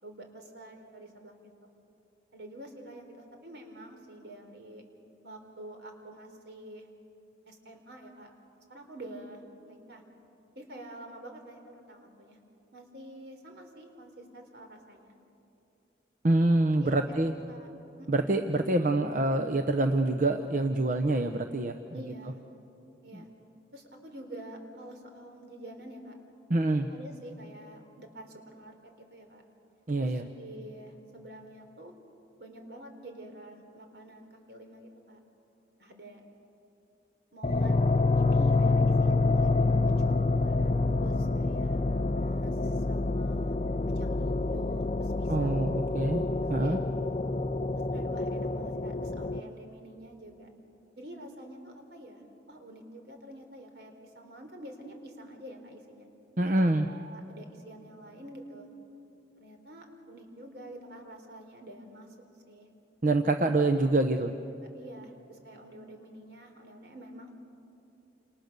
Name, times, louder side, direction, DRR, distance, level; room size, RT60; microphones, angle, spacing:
voice 1, 0.0-1.3 1.6-1.7 2.3-4.8 5.2-6.9 7.5-8.3 8.7-10.0 10.6-12.4 12.7-15.1 16.7-17.7 18.0-18.4 21.9-22.4 23.0-23.3 23.7-26.1 26.9-29.4 30.0-31.9 32.4-35.2 35.8-36.2 37.3-40.7 41.0-43.6 43.9-45.6 46.6-47.1 47.7-50.5 51.0-56.1 56.4-56.5 56.9-58.7 59.4-62.2 62.5-62.7 63.7-63.8 64.7-67.3, right 1 dB, 70° right, 4 dB, 3.8 m, -47 dB
voice 2, 16.2-17.3 18.1-21.8 26.5-26.9 29.9-30.2 45.3-46.2 46.5-46.8 56.4-56.9 63.0-64.3, right 2 dB, 45° right, 5 dB, 0.8 m, -26 dB
sound 1, 37.4-49.4, left 3 dB, 35° left, 0.5 m, -27 dB
29.0 x 27.5 x 6.8 m, 2.8 s
head